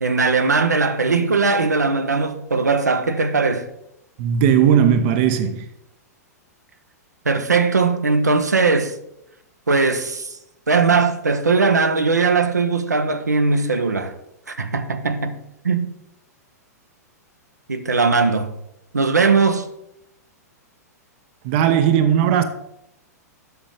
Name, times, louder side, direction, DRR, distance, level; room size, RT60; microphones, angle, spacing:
voice 1, 0.0-3.7 7.2-8.9 9.7-10.4 10.7-14.1 14.5-15.9 17.7-18.5 18.9-19.7, right 4 dB, 80° right, 0.9 m, -19 dB
voice 2, 4.2-5.7 21.4-22.4, right 9 dB, 45° right, 0.8 m, -17 dB
8.0 x 6.3 x 5.6 m
figure-of-eight pair, 100°, 9 cm